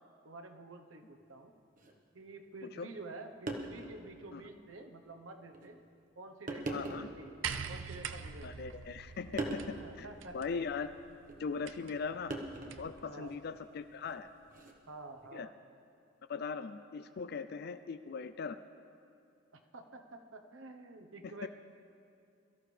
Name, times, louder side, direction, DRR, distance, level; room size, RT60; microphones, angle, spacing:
voice 1, 0.2-1.5 2.1-5.8 6.2-7.4 7.7-8.7 9.8-10.5 13.0-13.3 14.9-15.5 19.5-21.5, right 2 dB, 90° right, 5 dB, 1.0 m, -49 dB
sound 1, 1.8-1.9 3.0-3.1 3.5-4.0 4.5-4.6 5.5-5.7 6.5-7.2 8.0-8.7 9.4-9.7 11.3-11.5 12.3-12.9 14.5-14.7, right 2 dB, 45° right, 1.2 m, -40 dB
voice 2, 6.7-7.1 8.4-10.1 10.3-10.9 11.4-12.4 12.8-14.3 15.3-15.5 16.3-18.6 21.2-21.5, left 5 dB, 55° left, 11 dB, 0.4 m, -39 dB
sound 2, 7.4-13.0 14.1-14.2, right 7 dB, 70° right, 0.6 m, -45 dB
22.5 x 13.5 x 3.3 m, 2.5 s
head